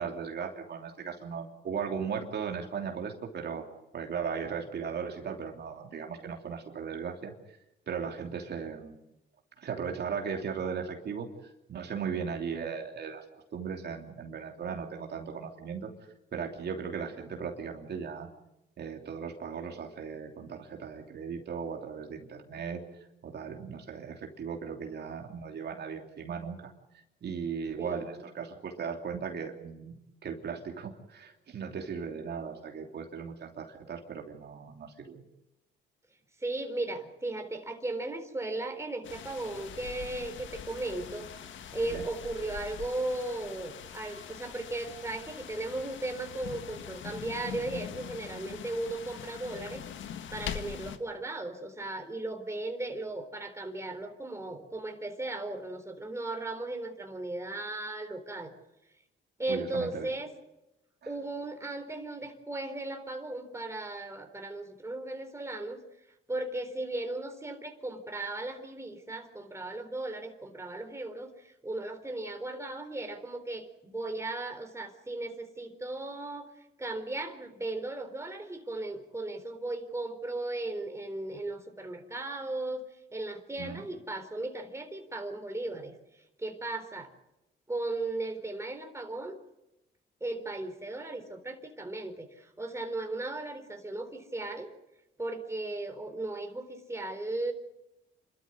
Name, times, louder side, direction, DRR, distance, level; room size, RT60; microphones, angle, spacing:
voice 1, 0.0-3.6 3.9-7.6 7.9-8.9 9.6-13.2 13.5-15.9 16.3-18.3 18.8-22.8 23.2-26.7 27.2-29.9 30.2-35.2 41.8-42.0 59.5-60.1 61.0-61.1 83.6-83.8, right 6 dB, 55° right, 2 dB, 3.0 m, -37 dB
voice 2, 27.8-28.3 36.4-41.3 41.7-49.8 50.3-58.5 59.4-60.3 61.1-65.8 66.3-76.5 76.8-82.8 83.1-87.1 87.7-89.4 90.2-94.7 95.2-97.5, right 2 dB, 15° right, 5 dB, 4.0 m, -36 dB
sound 1, 39.0-51.0, left 8 dB, 70° left, 1.8 m, -43 dB
28.0 x 13.0 x 9.8 m, 0.93 s
cardioid pair, 90°, 20 cm